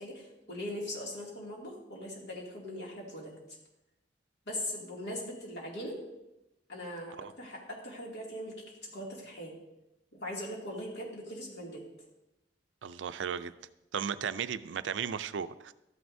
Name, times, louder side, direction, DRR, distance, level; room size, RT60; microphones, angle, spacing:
voice 1, 0.0-3.3 4.5-6.0 6.7-8.5 8.9-9.5 10.1-11.8, left 1 dB, 65° left, -2 dB, 2.5 m, -40 dB
voice 2, 12.8-13.5 13.9-15.7, right 7 dB, 85° right, 13 dB, 0.4 m, -35 dB
12.5 x 9.3 x 2.7 m, 0.94 s
head